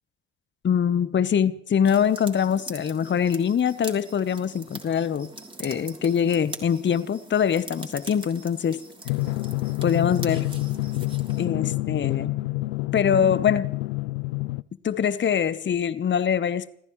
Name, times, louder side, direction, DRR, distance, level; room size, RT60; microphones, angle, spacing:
voice 1, 0.6-5.3 5.6-8.8 9.8-10.5 11.4-12.3 12.9-13.7 14.8-16.7, left 8 dB, 30° left, 15 dB, 1.0 m, -23 dB
sound 1, 1.8-11.5, right 2 dB, 15° right, 3.4 m, -43 dB
Drum, 9.1-14.6, left 20 dB, 80° left, 0.5 m, -27 dB
30.0 x 14.5 x 3.2 m, 0.67 s
hypercardioid pair, 55°, 35 cm